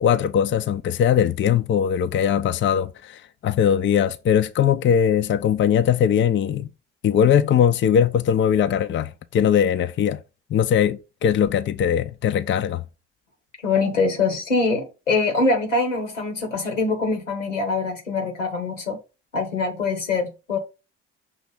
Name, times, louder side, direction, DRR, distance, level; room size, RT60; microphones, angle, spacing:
voice 1, 0.0-6.7 7.0-10.2 10.5-12.8, left 8 dB, 35° left, 0.5 m, -20 dB
voice 2, 13.6-19.0 19.3-20.6, left 3 dB, 85° left, 1.4 m, -23 dB
6.2 x 3.0 x 5.3 m
figure-of-eight pair, 45°, 36 cm